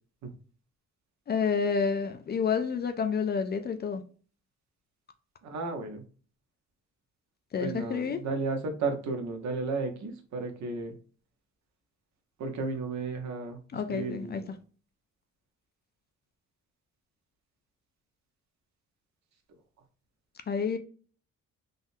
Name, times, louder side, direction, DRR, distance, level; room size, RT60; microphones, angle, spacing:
voice 1, 1.3-4.0 7.5-8.2 13.7-14.4 20.5-20.8, left 6 dB, 35° left, 0.4 m, -29 dB
voice 2, 5.4-6.0 7.6-10.9 12.4-14.6, right 3 dB, 65° right, 0.8 m, -34 dB
3.6 x 2.1 x 2.6 m
cardioid pair, 90°, 30 cm